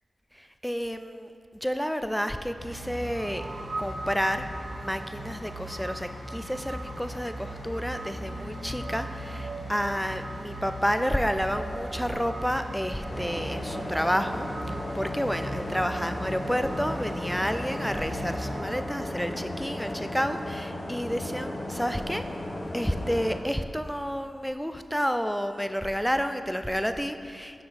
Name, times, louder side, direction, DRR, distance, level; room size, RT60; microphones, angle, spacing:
voice 1, 0.3-1.3 1.6-3.5 3.8-4.4 4.8-22.2 22.7-27.6, equal, 5° left, 9 dB, 0.4 m, -30 dB
sound 1, 2.6-18.6, equal, 65° left, 1.2 m, -39 dB
sound 2, 3.0-18.8, right 2 dB, 65° right, 0.6 m, -42 dB
sound 3, 13.1-23.4, left 1 dB, 45° left, 0.8 m, -36 dB
6.0 x 4.8 x 4.1 m, 2.2 s
cardioid pair, 40°, 0 cm